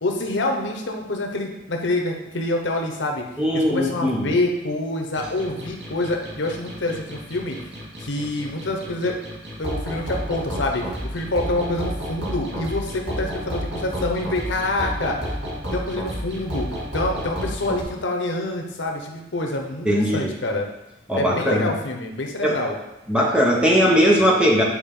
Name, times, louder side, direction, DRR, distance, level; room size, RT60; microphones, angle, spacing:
voice 1, 0.0-3.2 3.5-7.6 8.0-9.1 9.6-15.2 15.7-16.7 16.9-20.7 21.1-22.7, left 2 dB, 80° left, 2 dB, 1.0 m, -26 dB
voice 2, 3.4-4.3 19.8-20.3 21.1-21.7 22.4-22.6 23.1-24.6, equal, 5° right, -3 dB, 1.1 m, -19 dB
sound 1, 5.1-17.8, equal, 80° right, 2.5 m, -31 dB
8.8 x 4.7 x 3.8 m, 0.98 s
head